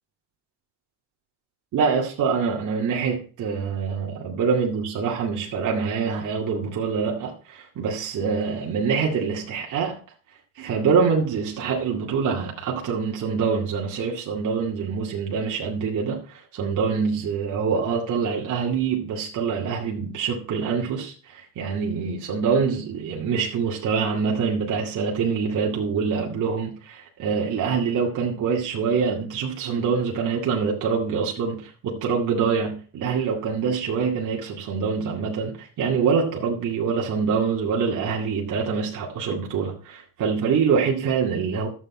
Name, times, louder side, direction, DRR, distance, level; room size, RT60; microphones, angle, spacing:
voice 1, 1.7-10.0 10.6-41.7, right 5 dB, 60° right, 2.2 m, -25 dB
12.0 x 7.9 x 4.3 m
cardioid pair, 100°, 34 cm